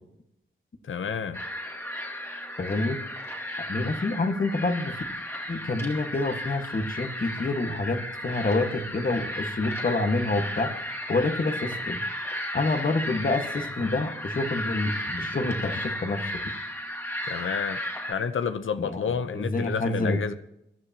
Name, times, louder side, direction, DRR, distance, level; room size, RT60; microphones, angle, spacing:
voice 1, 0.8-1.4 17.2-17.8 18.1-20.3, left 6 dB, 75° left, 0.9 m, -30 dB
sound 1, 1.3-18.1, equal, 10° left, 2.3 m, -34 dB
voice 2, 2.6-3.0 3.6-4.9 5.5-10.7 11.1-12.0 12.5-16.3 18.8-19.0 19.3-20.2, left 2 dB, 45° left, 1.7 m, -27 dB
23.0 x 13.0 x 3.0 m
wide cardioid pair, 155°, 20 cm